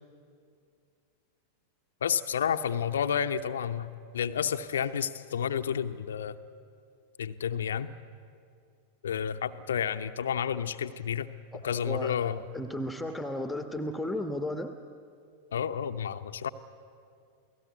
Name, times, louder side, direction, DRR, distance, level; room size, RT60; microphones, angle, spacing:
voice 1, 2.0-6.4 7.2-7.9 9.0-12.5 15.5-16.5, left 8 dB, 65° left, 10 dB, 0.8 m, -31 dB
voice 2, 12.5-14.7, left 1 dB, ahead, 6 dB, 1.3 m, -34 dB
29.0 x 18.0 x 9.3 m, 2.4 s
figure-of-eight pair, 90°, 0 cm